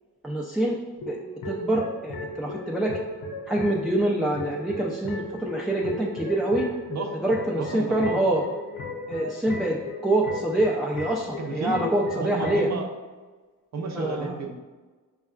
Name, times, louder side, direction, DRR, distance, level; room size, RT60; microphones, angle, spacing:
voice 1, 0.2-0.8 1.1-1.2 1.4-2.9 3.5-6.7 7.2-8.4 9.1-12.7 13.9-14.4, right 1 dB, ahead, -3 dB, 0.4 m, -25 dB
sound 1, 1.0-12.7, left 2 dB, 75° left, 0.8 m, -36 dB
voice 2, 7.5-8.2 11.4-11.8 12.1-12.9 13.7-14.5, right 3 dB, 50° right, 3 dB, 0.7 m, -31 dB
5.2 x 2.3 x 2.4 m, 1.3 s
supercardioid pair, 55°, 36 cm